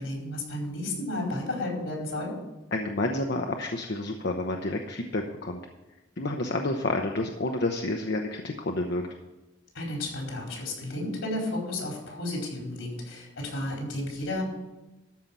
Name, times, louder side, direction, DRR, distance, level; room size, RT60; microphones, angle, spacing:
voice 1, 0.0-2.3 9.7-14.4, left 1 dB, 85° left, -1 dB, 4.7 m, -32 dB
voice 2, 2.7-5.6 6.2-9.0, left 2 dB, 60° left, 2 dB, 0.9 m, -29 dB
13.5 x 5.7 x 7.4 m, 1.0 s
head